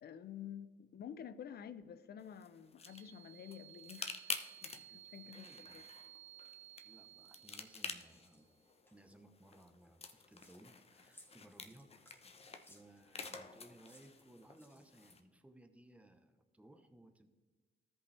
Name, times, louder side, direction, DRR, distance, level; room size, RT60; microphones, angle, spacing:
voice 1, 0.0-5.8, left 9 dB, 55° left, 0.5 m, -50 dB
sound 1, 2.2-15.2, left 4 dB, 30° left, 0.9 m, -50 dB
sound 2, 2.8-8.5, right 14 dB, 75° right, 0.7 m, -58 dB
voice 2, 5.3-5.8 6.8-8.5 8.9-12.3 12.7-17.3, right 1 dB, 5° right, 0.8 m, -61 dB
sound 3, 8.3-8.4 8.9-9.1 9.8-10.6 11.1-13.4 13.8-15.1, left 1 dB, 10° left, 2.1 m, -64 dB
13.5 x 5.4 x 3.3 m
cardioid pair, 90°, 20 cm